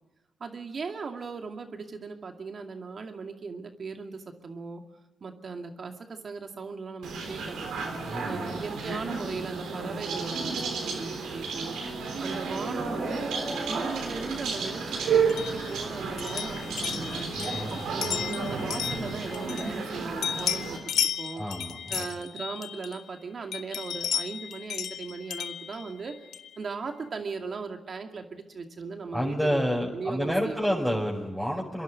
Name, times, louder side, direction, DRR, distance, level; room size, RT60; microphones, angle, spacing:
voice 1, 0.4-4.8 5.2-7.7 8.2-11.8 12.2-13.3 13.7-21.4 21.9-26.1 26.6-29.6 29.9-30.8, right 4 dB, 60° right, 4 dB, 2.3 m, -38 dB
sound 1, 7.0-20.8, right 4 dB, 90° right, 3.7 m, -32 dB
voice 2, 8.1-8.6 17.4-18.1 21.4-22.1 29.1-31.8, equal, 5° left, -5 dB, 5.2 m, -29 dB
sound 2, 12.4-18.4, equal, 10° right, 4.7 m, -43 dB
sound 3, 15.3-19.9 20.2-23.1 23.5-26.6, left 8 dB, 80° left, 0.7 m, -34 dB
26.0 x 11.0 x 9.6 m, 1.1 s
supercardioid pair, 45°, 0 cm